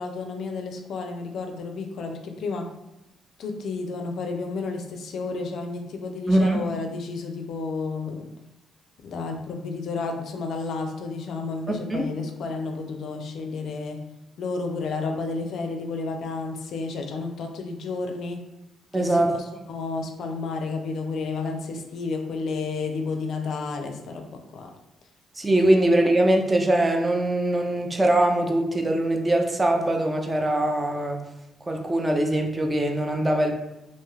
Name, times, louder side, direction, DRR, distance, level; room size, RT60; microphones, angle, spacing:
voice 1, 0.0-2.7 3.4-8.2 9.0-14.0 14.4-18.4 18.9-24.3 24.5-24.7 25.6-25.7, left 4 dB, 65° left, 4 dB, 0.4 m, -31 dB
voice 2, 6.3-6.7 11.9-12.1 18.9-19.3 25.4-31.2 31.6-33.5, right 1 dB, 20° right, 3 dB, 0.4 m, -22 dB
2.5 x 2.2 x 3.2 m, 0.91 s
cardioid pair, 90°, 0 cm